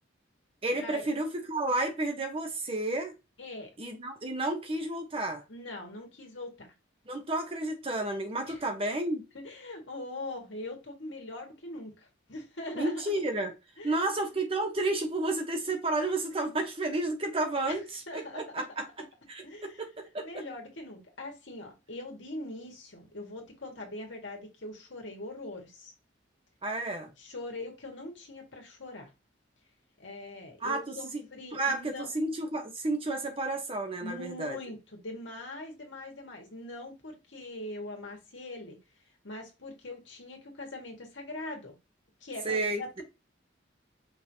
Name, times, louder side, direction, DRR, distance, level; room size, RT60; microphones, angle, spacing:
voice 1, 0.6-3.1 3.8-5.4 7.1-9.2 12.7-13.5 13.8-18.8 19.3-20.4 26.6-27.1 30.6-30.8 31.1-31.2 31.5-34.6 42.4-43.0, right 2 dB, 30° right, 0.8 m, -31 dB
voice 2, 3.4-3.7 5.5-6.7 8.5-8.6 9.3-13.1 13.8-14.1 17.7-17.8 18.1-18.8 19.4-19.8 20.2-25.9 27.2-29.1 30.0-32.1 34.0-38.8 39.2-41.7 42.2-43.0, left 2 dB, 75° left, 1.7 m, -42 dB
5.3 x 3.2 x 2.7 m
head